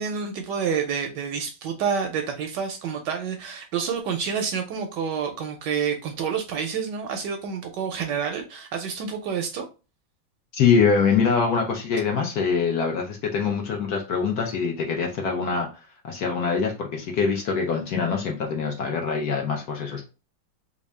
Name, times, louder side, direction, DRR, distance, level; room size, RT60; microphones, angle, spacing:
voice 1, 0.0-9.7, right 6 dB, 75° right, 4 dB, 1.1 m, -28 dB
voice 2, 10.5-15.7 16.0-20.0, left 5 dB, 60° left, 1 dB, 1.1 m, -24 dB
3.5 x 2.6 x 3.2 m, 0.31 s
omnidirectional pair, 2.1 m